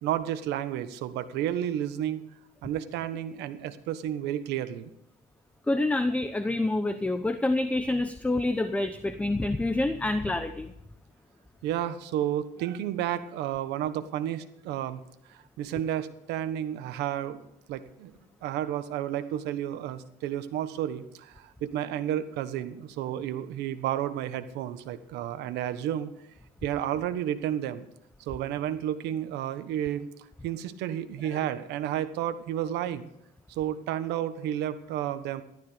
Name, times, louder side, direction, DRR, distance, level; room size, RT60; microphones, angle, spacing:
voice 1, 0.0-2.3 2.6-4.9 11.6-15.0 15.3-17.4 17.7-18.1 18.4-26.1 26.6-27.9 28.2-33.1 33.5-35.4, right 11 dB, 90° right, 11 dB, 1.3 m, -31 dB
voice 2, 5.7-10.7, left 2 dB, 10° left, 9 dB, 0.8 m, -27 dB
14.0 x 12.5 x 5.1 m, 0.77 s
cardioid pair, 110°, 17 cm